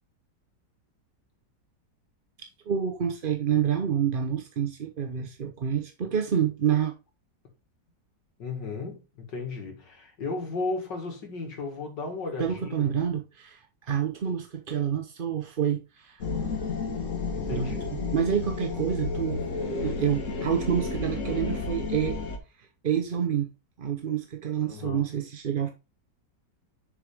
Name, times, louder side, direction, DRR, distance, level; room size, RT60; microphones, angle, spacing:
voice 1, 2.4-6.9 12.4-16.2 17.5-19.4 19.8-22.2 22.8-23.5 23.8-25.7, right 8 dB, 45° right, 0.7 m, -28 dB
voice 2, 8.4-13.0 17.3-17.9 24.6-25.0, left 3 dB, 80° left, 2.8 m, -35 dB
sound 1, 16.2-22.4, left 4 dB, 50° left, 1.5 m, -31 dB
7.0 x 6.5 x 3.5 m
omnidirectional pair, 1.9 m